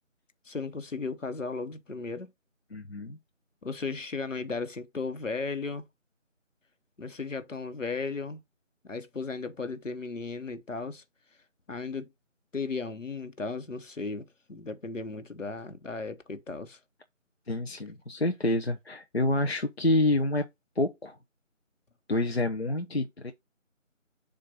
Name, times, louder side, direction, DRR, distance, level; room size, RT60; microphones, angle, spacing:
voice 1, 0.5-2.3 3.6-5.8 7.0-8.4 8.8-11.0 11.7-12.1 12.5-16.8, left 4 dB, 70° left, 1.1 m, -35 dB
voice 2, 2.7-3.2 17.5-20.4 20.8-21.1 22.1-23.3, left 2 dB, 55° left, 0.6 m, -28 dB
6.9 x 2.5 x 5.4 m
figure-of-eight pair, 175°, 39 cm